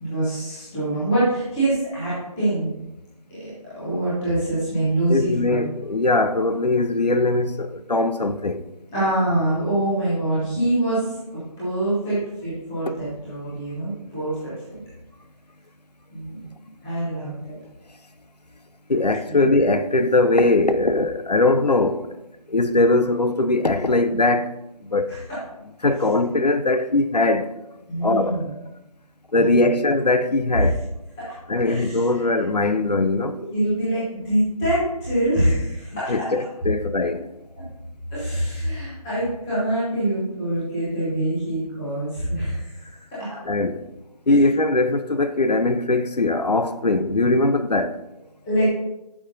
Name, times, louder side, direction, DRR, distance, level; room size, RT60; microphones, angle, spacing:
voice 1, 0.0-2.7 3.4-5.6 8.9-14.6 16.1-16.4 16.8-17.6 19.3-19.5 25.1-25.4 27.9-28.5 29.3-29.7 30.5-30.6 31.2-31.4 31.6-32.0 33.5-36.5 37.6-37.7 38.1-42.9 43.1-43.4 48.4-48.7, right 1 dB, 5° left, 0.7 m, -25 dB
voice 2, 5.1-8.7 18.9-22.2 22.5-24.5 24.8-25.1 25.8-27.5 28.0-28.5 29.3-30.8 31.5-33.4 36.1-37.3 43.5-43.8 44.3-48.0, left 2 dB, 85° left, 0.6 m, -20 dB
10.5 x 5.7 x 2.6 m
figure-of-eight pair, 160°, 20 cm